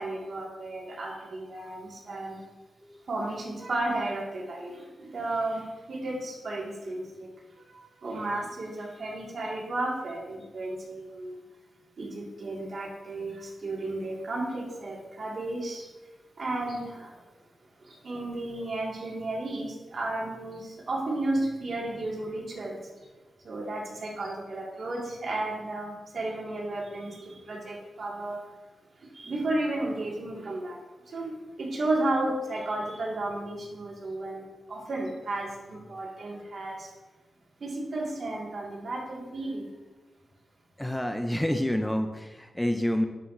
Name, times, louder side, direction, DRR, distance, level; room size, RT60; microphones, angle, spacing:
voice 1, 0.0-2.4 3.1-7.3 7.6-11.4 12.0-15.9 16.4-17.2 17.8-23.1 23.4-28.4 29.0-36.9 37.6-39.6, right 2 dB, 55° right, -2 dB, 1.8 m, -33 dB
voice 2, 40.8-43.1, left 1 dB, 5° left, 6 dB, 0.4 m, -28 dB
11.0 x 5.8 x 2.6 m, 1.2 s
wide cardioid pair, 125°, 0 cm